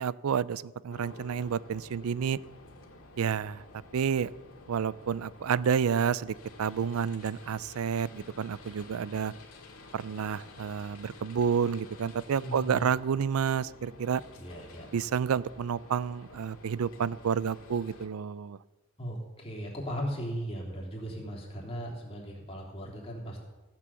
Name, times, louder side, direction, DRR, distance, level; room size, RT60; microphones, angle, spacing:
voice 1, 0.0-2.4 3.2-3.6 3.9-4.3 4.7-9.3 9.9-14.2 14.9-18.6, right 7 dB, 90° right, 20 dB, 0.4 m, -30 dB
sound 1, 0.9-18.1, left 2 dB, 85° left, 1.9 m, -51 dB
voice 2, 12.4-12.8 14.4-14.9 19.0-23.4, equal, 25° left, -2 dB, 3.1 m, -37 dB
15.0 x 7.6 x 7.0 m, 1.2 s
head